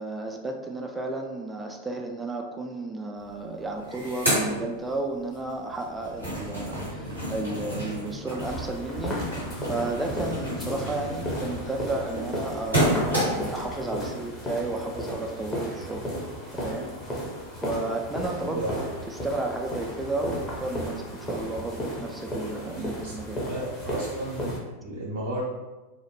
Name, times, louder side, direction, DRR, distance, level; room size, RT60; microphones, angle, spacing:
voice 1, 0.0-9.2 9.6-16.1 16.5-17.2 17.6-23.4, right 2 dB, 10° right, 2 dB, 0.3 m, -33 dB
sound 1, 3.2-3.3 3.6-5.4 5.7-13.6, right 1 dB, 90° left, 1.4 m, -30 dB
sound 2, 8.4-24.6, equal, 15° left, 0.7 m, -34 dB
voice 2, 22.7-23.1 23.4-24.5 24.8-25.4, right 1 dB, 60° right, -5 dB, 0.5 m, -33 dB
2.5 x 2.0 x 3.1 m, 1.1 s
figure-of-eight pair, 90°, 0 cm